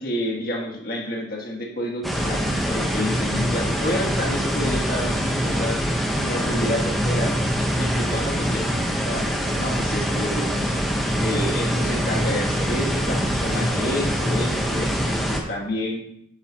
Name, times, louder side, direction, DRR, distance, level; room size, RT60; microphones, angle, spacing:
voice 1, 0.0-5.8 6.2-7.3 7.8-10.5 11.2-16.0, left 1 dB, 50° left, -1 dB, 1.8 m, -29 dB
sound 1, 2.0-15.4, equal, ahead, 0.9 m, -24 dB
9.8 x 6.9 x 2.9 m, 0.72 s
head